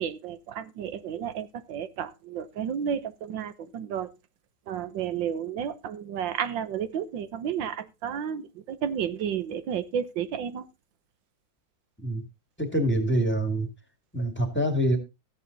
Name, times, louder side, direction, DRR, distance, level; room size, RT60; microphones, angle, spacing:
voice 1, 0.0-4.1 4.7-10.7, right 8 dB, 75° right, 13 dB, 1.6 m, -32 dB
voice 2, 12.6-13.7 14.1-15.0, right 1 dB, 5° left, 5 dB, 2.2 m, -25 dB
14.0 x 8.2 x 4.0 m, 0.26 s
omnidirectional pair, 2.0 m